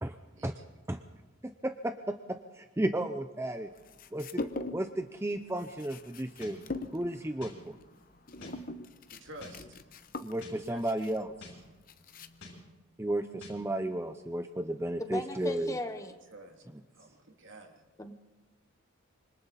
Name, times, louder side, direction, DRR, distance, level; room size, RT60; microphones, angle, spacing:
voice 1, 0.3-0.6 9.1-9.8 10.6-11.1 16.3-16.6 16.9-17.8, right 1 dB, 60° right, 2 dB, 2.9 m, -50 dB
voice 2, 1.4-3.7 4.1-6.6 6.9-7.7 10.2-11.3 13.0-15.7, right 1 dB, 10° right, 8 dB, 0.6 m, -33 dB
sound 1, 3.8-5.0 5.3-12.6, left 2 dB, 40° left, 0.9 m, -42 dB
sound 2, 6.4-6.6 7.4-7.6 8.4-8.6 9.4-9.6 10.4-10.6 11.4-11.6 12.4-12.6 13.4-13.6, left 3 dB, 65° left, 6.8 m, -47 dB
voice 3, 15.0-16.2 18.0-18.1, left 1 dB, 15° left, 7 dB, 1.0 m, -37 dB
26.5 x 25.0 x 4.2 m, 1.1 s
head